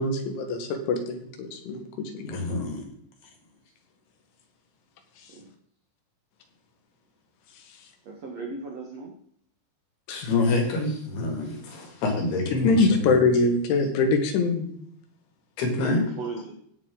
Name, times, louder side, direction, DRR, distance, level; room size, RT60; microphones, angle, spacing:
voice 1, 0.0-2.4 10.1-10.3 12.5-14.8, left 3 dB, 90° left, 5 dB, 4.0 m, -24 dB
voice 2, 2.3-2.9 10.1-13.1 15.6-16.1, left 2 dB, 60° left, 1 dB, 4.5 m, -27 dB
voice 3, 8.0-9.1 15.8-16.6, right 3 dB, 65° right, -1 dB, 1.6 m, -36 dB
16.5 x 7.4 x 3.9 m, 0.65 s
omnidirectional pair, 5.3 m